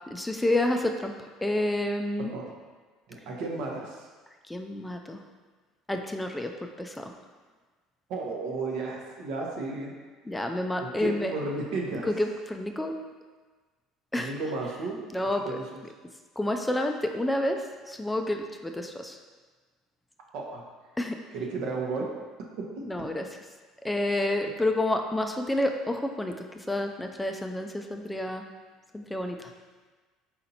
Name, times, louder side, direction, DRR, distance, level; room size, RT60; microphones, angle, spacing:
voice 1, 0.1-2.3 4.5-5.2 5.9-7.1 10.2-11.3 12.1-12.9 14.1-14.3 15.1-15.6 16.4-19.2 21.0-21.2 22.8-23.4 23.8-28.5 28.9-29.5, left 1 dB, 10° left, 4 dB, 0.3 m, -29 dB
voice 2, 3.1-4.0 8.1-9.9 10.8-12.1 14.1-15.0 15.4-15.6 20.3-20.6 21.3-22.1, right 3 dB, 70° right, -1 dB, 0.8 m, -33 dB
4.2 x 2.7 x 4.0 m, 1.4 s
supercardioid pair, 80°, 0 cm